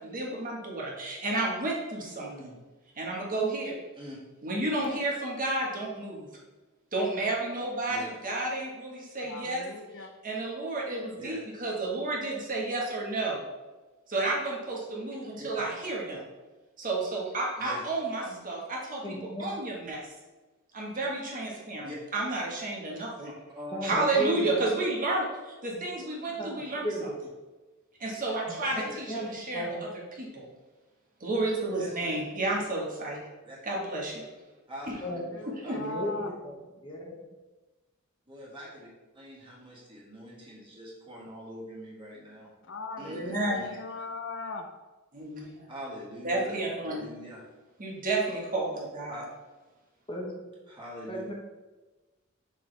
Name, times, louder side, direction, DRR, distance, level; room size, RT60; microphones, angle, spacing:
voice 1, 0.0-2.3 3.0-3.7 4.4-6.3 6.9-9.7 10.0-13.4 14.1-16.2 16.8-20.1 20.7-23.3 23.8-27.1 28.0-29.9 30.2-30.5 31.2-33.2 33.6-34.3 34.9-35.0 35.4-35.8 43.0-43.6 45.1-45.6 46.2-47.0 47.8-49.2, right 2 dB, 40° right, -2 dB, 1.5 m, -31 dB
voice 2, 9.2-10.1 35.0-36.3 42.6-44.7, left 3 dB, 60° left, 6 dB, 0.6 m, -40 dB
voice 3, 19.0-19.5 23.7-24.6 26.4-26.5 26.8-27.1 29.1-29.3 29.5-29.9 35.0-35.2 35.7-36.3 36.8-37.2 50.1-50.7 51.1-51.3, equal, 25° left, -1 dB, 1.0 m, -35 dB
voice 4, 23.5-24.0 28.6-29.0 31.8-32.2 33.4-33.6 34.7-36.1 38.3-38.9 39.1-42.5 43.0-43.7 45.7-46.5 46.8-47.4 49.1-49.2 50.7-51.3, equal, 25° right, -6 dB, 2.3 m, -44 dB
6.2 x 6.1 x 3.3 m, 1.2 s
head